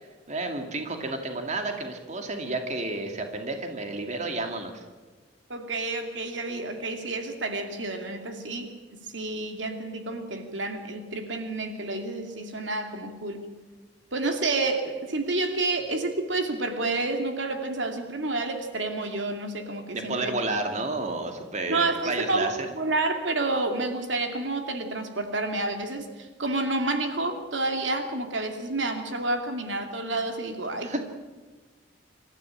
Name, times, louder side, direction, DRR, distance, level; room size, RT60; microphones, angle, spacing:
voice 1, 0.3-4.8 19.9-22.6 30.8-31.0, right 2 dB, 40° right, 4 dB, 2.4 m, -31 dB
voice 2, 5.5-13.5 14.1-20.3 21.7-31.0, right 2 dB, 80° right, 5 dB, 2.5 m, -29 dB
26.5 x 14.0 x 8.8 m, 1.3 s
head